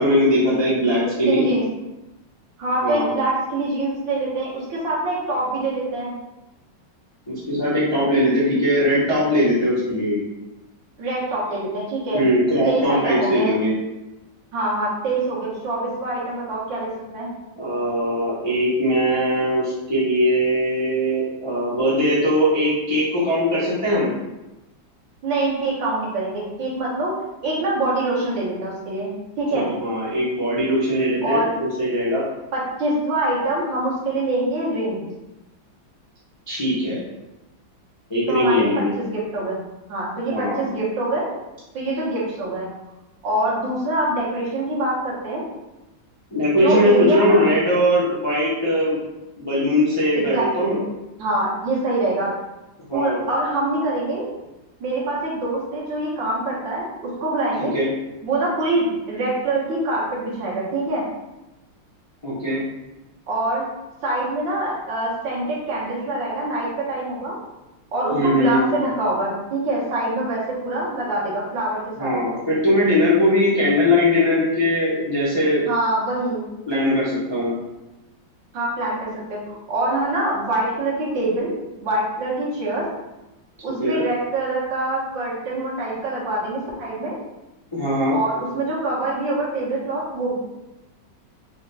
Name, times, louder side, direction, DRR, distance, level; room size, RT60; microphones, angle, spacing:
voice 1, 0.0-1.4 2.8-3.1 7.3-10.2 12.1-13.7 17.6-24.1 29.5-32.2 36.5-37.0 38.1-38.9 40.3-40.7 46.3-49.0 49.4-50.8 52.9-53.2 57.6-57.9 62.2-62.6 68.1-68.7 72.0-75.6 76.7-77.5 83.8-84.0 87.7-88.2, equal, 35° left, -9 dB, 0.4 m, -20 dB
voice 2, 1.3-1.6 2.6-6.1 11.0-12.3 12.7-13.5 14.5-17.3 25.2-29.1 29.4-29.7 31.2-31.6 32.5-35.0 38.3-39.6 39.9-41.3 41.7-42.7 43.2-45.4 46.6-47.5 50.1-50.8 51.2-52.3 52.9-54.3 54.8-57.8 58.2-61.0 63.3-63.6 64.0-67.4 67.9-72.1 75.7-76.5 78.5-82.9 83.6-87.2 88.1-90.3, right 2 dB, 70° right, -5 dB, 1.8 m, -24 dB
4.8 x 2.3 x 3.2 m, 1.0 s
omnidirectional pair, 2.1 m